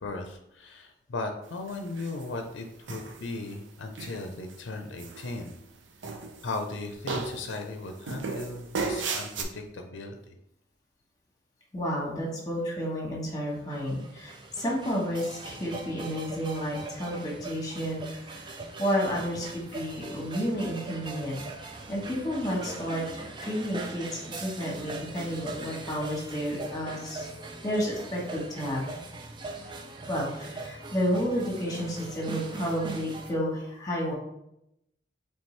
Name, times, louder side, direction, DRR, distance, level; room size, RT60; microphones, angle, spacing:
voice 1, 0.0-5.6 6.4-10.3, left 3 dB, 85° left, 4 dB, 0.6 m, -37 dB
sound 1, 1.7-2.3 2.9-3.5 3.9-4.5 5.0-5.7 6.0-6.7 7.1-7.6 8.1-9.4, right 4 dB, 85° right, 0.6 m, -35 dB
voice 2, 11.7-27.3 27.6-28.8 30.1-34.1, equal, 20° left, -2 dB, 1.2 m, -31 dB
sound 2, 13.5-33.3, right 3 dB, 25° right, 0.4 m, -41 dB
4.4 x 3.2 x 3.2 m, 0.79 s
head